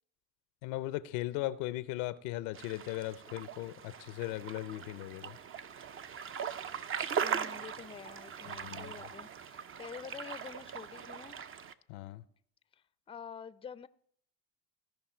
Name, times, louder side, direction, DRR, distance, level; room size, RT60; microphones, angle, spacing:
voice 1, 0.6-5.4 8.5-8.9 11.9-12.2, left 16 dB, 85° left, 0.6 m, -38 dB
sound 1, 2.5-11.7, right 7 dB, 40° right, 0.6 m, -40 dB
voice 2, 7.2-11.4 12.7-13.9, left 7 dB, 15° left, 0.4 m, -48 dB
16.0 x 5.5 x 4.3 m
supercardioid pair, 85°, 34 cm